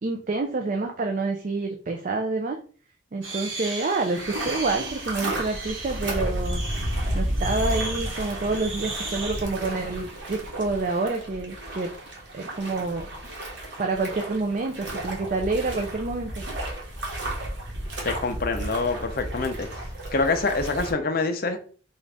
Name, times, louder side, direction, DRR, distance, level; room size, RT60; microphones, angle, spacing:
voice 1, 0.0-2.6 3.1-6.6 7.1-11.9 12.3-13.1 13.8-16.4, right 3 dB, 40° right, 3 dB, 0.4 m, -28 dB
sound 1, 3.2-9.4, right 2 dB, 80° right, 1.4 m, -37 dB
sound 2, 4.1-20.9, right 1 dB, 65° right, 1.1 m, -32 dB
voice 2, 18.0-19.7 20.1-21.6, left 3 dB, 50° left, 6 dB, 0.5 m, -25 dB
3.9 x 2.4 x 3.3 m, 0.42 s
head